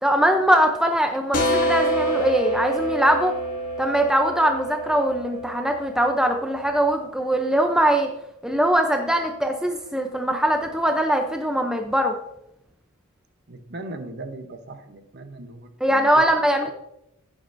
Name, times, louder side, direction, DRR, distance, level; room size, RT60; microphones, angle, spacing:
voice 1, 0.0-3.3 3.8-8.1 8.4-12.1 15.8-16.7, right 1 dB, 5° right, 4 dB, 0.5 m, -21 dB
sound 1, 1.3-6.8, right 1 dB, 35° left, 2.0 m, -27 dB
voice 2, 13.5-16.2, right 2 dB, 45° right, 7 dB, 0.9 m, -38 dB
10.5 x 10.0 x 2.6 m, 0.82 s
head